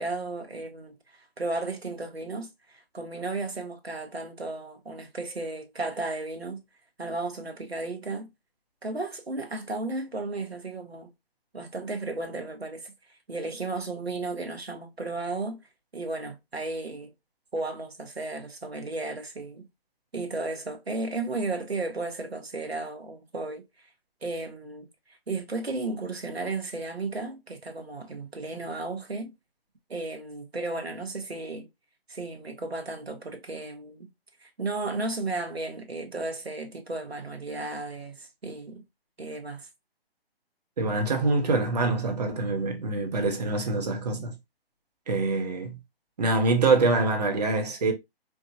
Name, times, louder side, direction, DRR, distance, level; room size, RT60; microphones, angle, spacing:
voice 1, 0.0-6.6 7.0-8.3 8.8-11.1 11.5-12.9 13.3-15.6 15.9-17.1 17.5-19.7 20.1-23.6 24.2-29.3 29.9-31.7 32.1-34.1 34.4-38.8 39.2-39.7, right 3 dB, 80° right, 1.1 m, -34 dB
voice 2, 40.8-44.3 45.1-45.8 46.2-47.9, right 3 dB, 40° right, 1.0 m, -25 dB
4.6 x 2.4 x 2.7 m
figure-of-eight pair, 140°, 30 cm